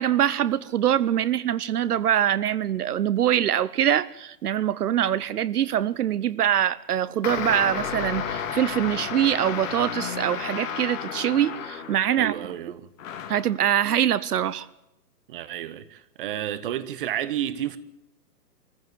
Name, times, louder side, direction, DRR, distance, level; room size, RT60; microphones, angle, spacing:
voice 1, 0.0-12.3 13.3-14.7, right 10 dB, 70° right, 0.8 m, -24 dB
sound 1, 7.2-12.3 13.0-13.5, left 7 dB, 55° left, 2.4 m, -32 dB
voice 2, 12.2-12.9 15.3-17.8, right 11 dB, 35° right, 1.0 m, -31 dB
22.0 x 15.0 x 9.4 m
hypercardioid pair, 155°, 48 cm